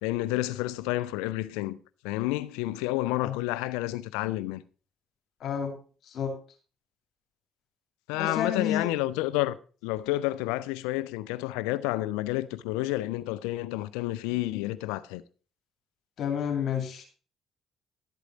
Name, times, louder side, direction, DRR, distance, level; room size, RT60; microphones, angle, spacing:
voice 1, 0.0-1.8 2.0-4.6 8.1-15.2, left 17 dB, 80° left, 0.5 m, -30 dB
voice 2, 5.4-5.7 6.1-6.3 8.2-8.9 16.2-17.1, left 8 dB, 60° left, 2.4 m, -30 dB
11.5 x 8.1 x 3.9 m
hypercardioid pair, 55°, 0 cm